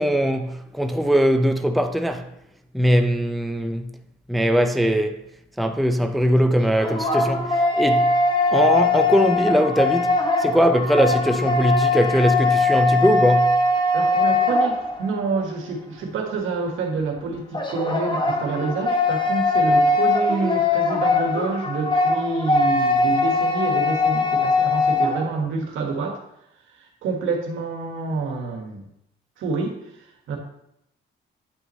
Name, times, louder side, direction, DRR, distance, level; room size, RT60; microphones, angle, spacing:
voice 1, 0.0-2.3 2.7-3.9 4.3-5.2 5.6-8.1 8.5-13.6, equal, ahead, 0.6 m, -20 dB
sound 1, 6.5-15.2 17.5-25.3, left 3 dB, 25° left, 1.0 m, -21 dB
voice 2, 13.9-26.2 27.0-28.8 29.4-29.8 30.3-30.4, right 4 dB, 80° right, 1.6 m, -27 dB
9.1 x 5.7 x 3.2 m
cardioid pair, 90°, 20 cm